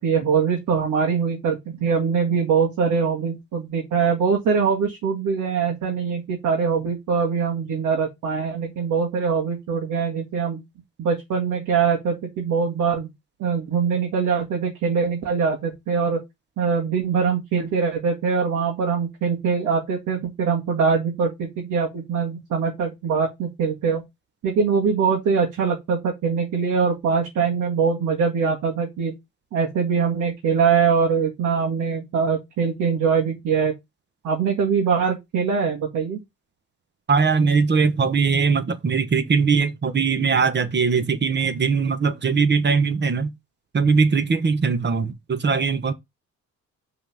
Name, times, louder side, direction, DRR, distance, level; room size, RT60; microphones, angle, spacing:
voice 1, 0.0-10.6 11.0-13.1 13.4-16.2 16.6-24.0 24.4-29.1 29.5-33.7 34.2-36.2, right 6 dB, 80° right, 2.0 m, -23 dB
voice 2, 37.1-43.3 43.7-45.9, right 5 dB, 35° right, 1.2 m, -20 dB
5.7 x 3.9 x 5.8 m
cardioid pair, 90°, 30 cm